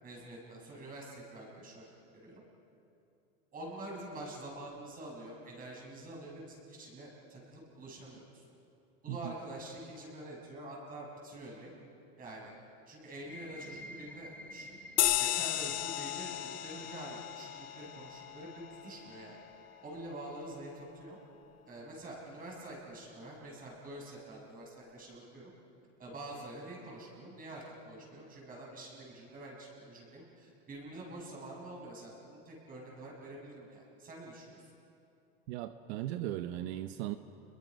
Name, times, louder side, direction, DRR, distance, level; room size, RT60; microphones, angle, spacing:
voice 1, 0.0-1.9 2.1-2.4 3.5-8.4 9.0-11.7 12.2-12.5 12.9-14.8 15.1-19.4 19.8-21.2 21.7-25.5 26.0-34.6, right 1 dB, 25° right, -3 dB, 6.7 m, -46 dB
sound 1, 13.1-20.6, left 1 dB, 5° left, 1.8 m, -53 dB
sound 2, 15.0-19.9, left 15 dB, 50° left, 1.3 m, -35 dB
voice 2, 35.5-37.1, right 13 dB, 80° right, 10 dB, 0.9 m, -37 dB
30.0 x 22.0 x 5.3 m, 2.7 s
supercardioid pair, 145°, 32 cm